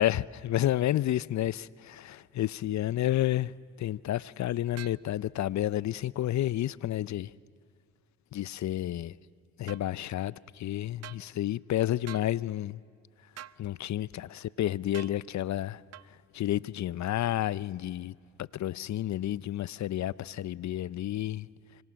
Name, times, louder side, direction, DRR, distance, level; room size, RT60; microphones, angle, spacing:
voice 1, 0.0-3.5 3.8-7.3 8.3-9.2 9.6-12.8 13.6-15.8 16.3-21.5, left 13 dB, 55° left, 0.5 m, -30 dB
sound 1, 4.8-5.0 9.7-9.8 11.0-11.2 12.1-12.3 13.4-13.6 14.9-15.2 15.9-16.1, right 11 dB, 50° right, 0.5 m, -45 dB
25.5 x 25.0 x 6.4 m
supercardioid pair, 60°, 34 cm